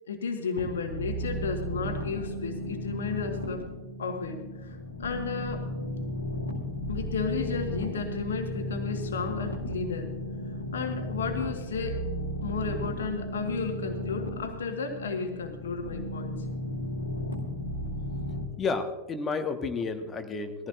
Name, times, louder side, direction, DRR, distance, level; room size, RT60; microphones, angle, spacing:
voice 1, 0.1-3.7 4.0-5.7 6.9-10.2 10.7-12.1 12.4-16.5, left 5 dB, 65° left, 5 dB, 1.6 m, -33 dB
sound 1, 0.6-18.4, equal, 80° left, 1.9 m, -35 dB
voice 2, 18.6-20.7, left 4 dB, 20° left, 7 dB, 1.4 m, -31 dB
20.5 x 15.0 x 2.6 m, 1.3 s
figure-of-eight pair, 90°, 0 cm